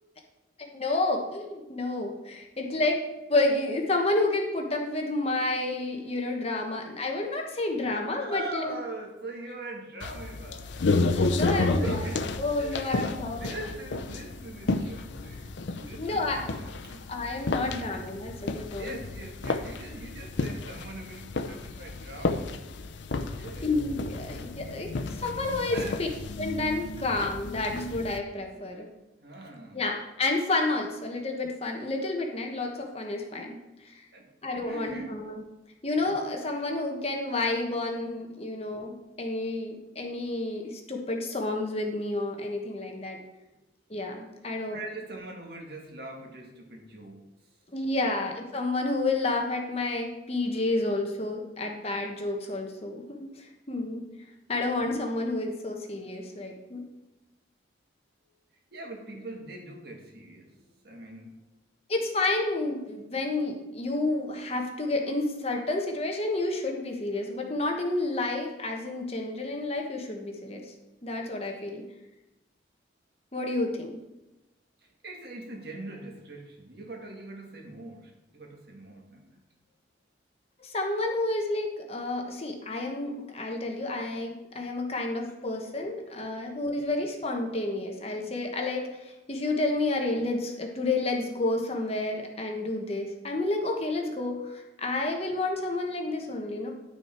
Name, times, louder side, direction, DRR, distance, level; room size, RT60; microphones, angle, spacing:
voice 1, 0.6-3.0 3.3-8.8 11.1-12.0 12.4-13.5 15.7-16.5 17.1-19.0 23.6-24.9 25.2-26.1 26.4-28.9 29.7-34.0 34.4-35.4 35.8-43.2 43.9-44.8 47.7-54.1 54.5-56.9 61.9-70.7 71.0-71.8 73.3-74.0 80.6-96.7, left 2 dB, 30° left, 2 dB, 1.1 m, -30 dB
voice 2, 8.2-10.9 11.2-12.3 12.6-17.1 17.5-17.9 18.7-22.6 23.3-23.8 25.7-26.4 28.5-28.7 29.2-29.9 34.1-34.3 34.6-35.1 44.4-47.6 48.1-48.2 58.7-61.4 74.8-79.4, right 2 dB, 55° right, 1 dB, 1.9 m, -42 dB
sound 1, 10.0-28.2, left 3 dB, 70° left, 0.6 m, -32 dB
11.0 x 6.3 x 4.4 m, 0.99 s
head